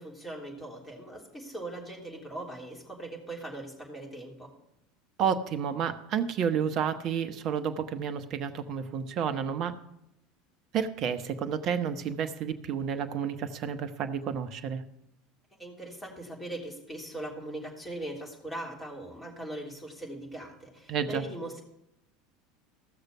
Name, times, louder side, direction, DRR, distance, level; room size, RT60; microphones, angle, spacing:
voice 1, 0.0-4.5 15.6-21.6, right 1 dB, 15° left, -1 dB, 3.3 m, -40 dB
voice 2, 5.2-9.8 10.7-14.8 20.9-21.2, right 7 dB, 45° right, 9 dB, 0.9 m, -30 dB
15.0 x 6.6 x 5.9 m, 0.83 s
figure-of-eight pair, 75°, 0 cm